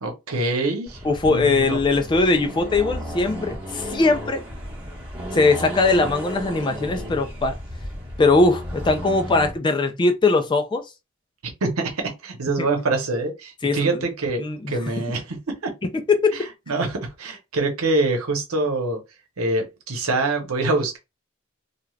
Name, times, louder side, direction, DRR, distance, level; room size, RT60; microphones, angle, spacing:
voice 1, 0.0-1.8 11.4-15.7 16.3-19.0 19.4-21.0, right 2 dB, 85° right, 0.9 m, -25 dB
Accelerating revving vroom, 0.9-9.6, equal, 25° right, 1.1 m, -34 dB
voice 2, 1.0-4.4 5.3-7.5 8.2-10.9 12.6-12.7 13.6-14.0 14.4-14.8 15.9-16.4, left 3 dB, 20° left, 0.3 m, -20 dB
2.3 x 2.3 x 3.1 m
head